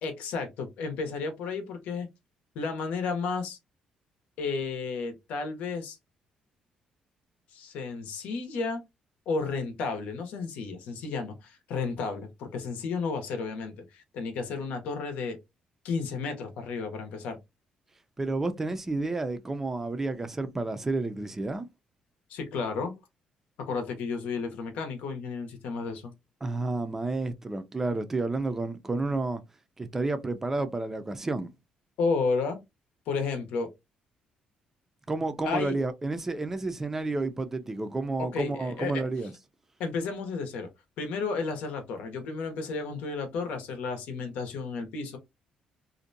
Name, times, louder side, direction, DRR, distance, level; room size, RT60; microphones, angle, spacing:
voice 1, 0.0-2.1 2.5-3.6 4.4-6.0 7.5-8.8 9.3-15.4 15.8-17.4 22.3-22.9 23.6-26.1 32.0-32.6 33.1-33.7 35.4-35.8 38.2-39.0 39.8-40.7 41.0-45.2, left 4 dB, 90° left, 0.8 m, -32 dB
voice 2, 18.2-21.7 26.4-29.4 29.8-31.5 35.1-39.3, right 2 dB, 15° right, 0.4 m, -30 dB
2.5 x 2.1 x 2.6 m
cardioid pair, 145°, 2 cm